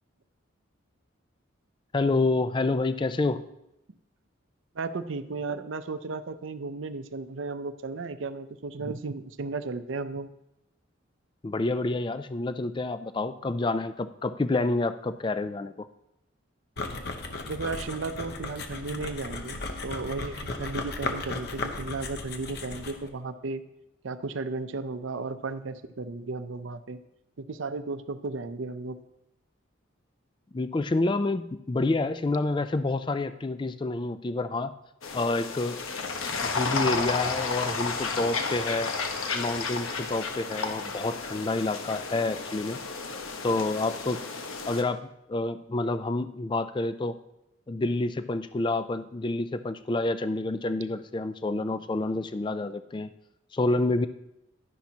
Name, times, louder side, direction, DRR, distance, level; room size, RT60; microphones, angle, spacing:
voice 1, 1.9-3.4 11.4-15.9 30.5-34.7 35.1-35.8 36.4-38.9 39.3-42.8 43.4-44.2 44.7-47.2 47.7-53.1 53.5-54.1, left 2 dB, 25° left, 12 dB, 0.3 m, -28 dB
voice 2, 4.7-10.3 17.4-23.6 24.0-27.0 27.4-29.0, right 3 dB, 70° right, 11 dB, 0.6 m, -34 dB
sound 1, 16.8-23.1, left 2 dB, 50° left, 0.9 m, -36 dB
sound 2, 35.0-44.8, left 4 dB, 85° left, 1.1 m, -32 dB
11.5 x 10.5 x 2.9 m, 0.85 s
head